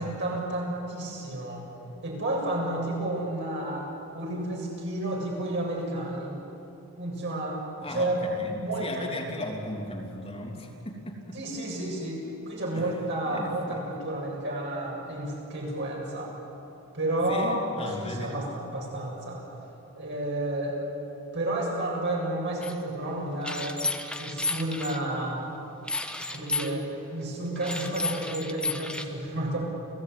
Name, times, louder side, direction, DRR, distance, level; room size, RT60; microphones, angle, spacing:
voice 1, 0.0-1.6 2.0-3.9 4.1-6.4 7.0-7.6 7.9-8.2 8.6-9.1 11.3-16.3 16.9-17.5 18.0-19.4 20.0-20.8 21.3-23.8 24.2-25.5 26.3-29.6, right 1 dB, 55° right, -2 dB, 7.9 m, -31 dB
voice 2, 7.8-11.4 12.7-13.8 17.3-18.4, left 1 dB, 30° left, 0 dB, 3.0 m, -37 dB
sound 1, 22.6-22.7 23.4-25.0 25.9-26.7 27.6-29.0, left 3 dB, 5° left, 1.3 m, -32 dB
29.5 x 17.5 x 9.6 m, 2.9 s
head